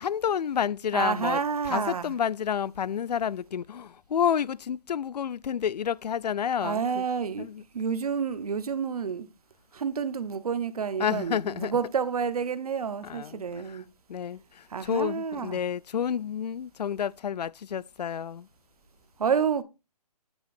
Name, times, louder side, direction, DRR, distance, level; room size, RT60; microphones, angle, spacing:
voice 1, 0.0-1.4 1.7-7.0 7.4-7.6 11.0-11.8 13.0-13.4 13.7-13.8 14.1-18.5, left 8 dB, 85° left, 0.4 m, -29 dB
voice 2, 0.9-2.1 6.6-9.3 9.7-13.8 14.7-15.6 19.2-19.6, right 6 dB, 65° right, 1.1 m, -29 dB
9.3 x 8.1 x 2.6 m
hypercardioid pair, 160°, 20 cm